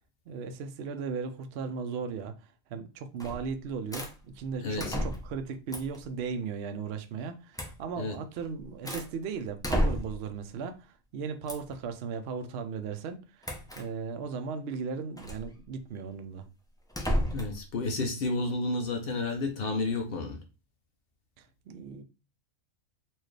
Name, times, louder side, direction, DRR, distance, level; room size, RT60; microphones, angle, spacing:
voice 1, 0.3-16.5 21.4-22.0, right 5 dB, 65° right, 0.7 m, -37 dB
sound 1, 3.2-3.5 3.9-4.1 4.8-5.4 5.7-6.0 7.5-7.8 8.3-9.1 9.6-10.3 11.5-11.7 13.4-13.9 15.2-15.5 16.9-17.6, equal, 5° left, 0.3 m, -31 dB
voice 2, 4.6-5.0 8.0-8.2 17.3-20.4, left 2 dB, 55° left, 0.8 m, -31 dB
4.3 x 2.4 x 3.2 m
omnidirectional pair, 1.4 m